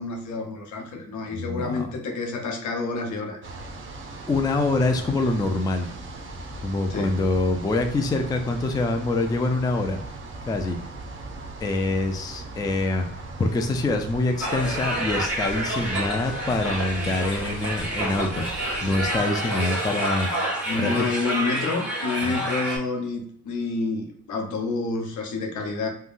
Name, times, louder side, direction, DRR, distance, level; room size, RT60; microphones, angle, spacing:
voice 1, 0.0-3.4 6.9-7.2 20.7-25.9, left 3 dB, 75° left, 3 dB, 0.8 m, -29 dB
voice 2, 1.3-1.9 4.3-5.9 6.6-10.0 10.5-10.8 11.6-13.0 13.4-18.4 18.8-20.3 20.7-21.1 22.2-22.4, left 2 dB, 15° left, 5 dB, 0.3 m, -25 dB
sound 1, 3.4-19.2, right 2 dB, 40° right, 0.6 m, -39 dB
sound 2, 14.4-22.8, right 1 dB, 5° right, 1.3 m, -28 dB
3.6 x 2.2 x 2.4 m, 0.69 s
cardioid pair, 90°, 30 cm